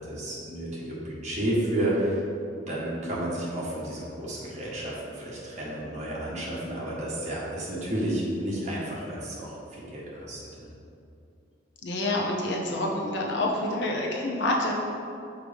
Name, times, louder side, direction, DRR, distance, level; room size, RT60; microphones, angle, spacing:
voice 1, 0.1-2.2 2.7-10.4, right 1 dB, 35° right, -6 dB, 1.3 m, -31 dB
voice 2, 11.8-14.7, left 1 dB, 65° left, -1 dB, 0.8 m, -27 dB
6.3 x 4.9 x 3.4 m, 2.6 s
head